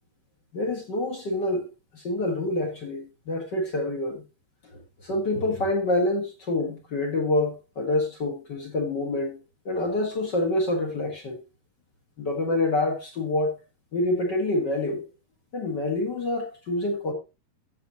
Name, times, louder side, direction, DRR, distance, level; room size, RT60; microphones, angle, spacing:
voice 1, 0.5-1.7 1.9-4.2 4.6-4.7 5.0-9.4 9.6-11.4 12.2-13.6 13.9-15.0 15.5-17.1, left 2 dB, 45° left, 1.5 m, -27 dB
14.5 x 7.4 x 3.0 m
omnidirectional pair, 4.2 m